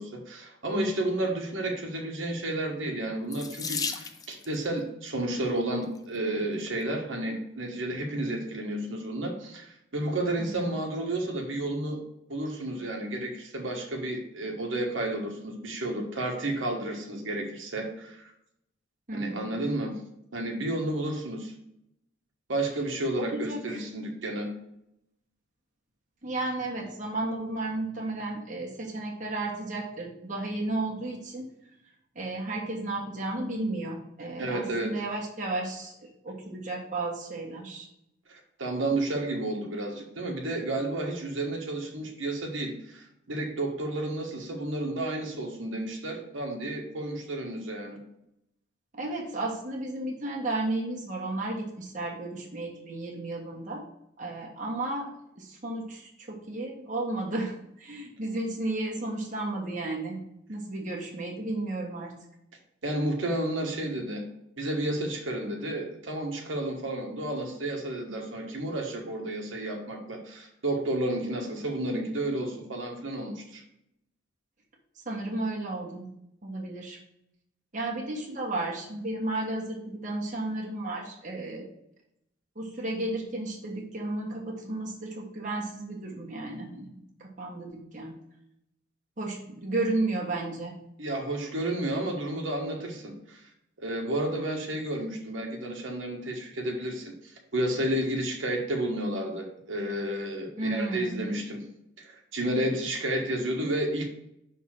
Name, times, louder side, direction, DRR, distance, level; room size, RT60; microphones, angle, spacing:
voice 1, 0.0-12.0 12.3-18.2 19.1-20.0 20.3-21.5 22.5-24.5 34.4-35.0 38.3-48.0 62.8-64.3 64.6-73.6 91.0-93.4 93.8-101.6 102.0-104.1, right 1 dB, 85° right, 1 dB, 1.4 m, -31 dB
Water tap faucet / Sink (filling or washing), 3.3-4.6 5.6-6.0 6.7-6.8 7.1-7.2, left 5 dB, 20° left, 0.4 m, -35 dB
voice 2, 10.4-10.8 19.1-19.6 23.2-23.8 26.2-31.5 32.1-37.9 48.9-53.8 54.2-60.2 60.5-62.1 75.0-76.1 76.4-77.0 77.7-81.7 82.5-86.9 87.2-88.1 89.2-90.7 100.6-101.3, right 2 dB, 40° right, -2 dB, 1.5 m, -33 dB
5.9 x 3.6 x 6.1 m, 0.79 s
head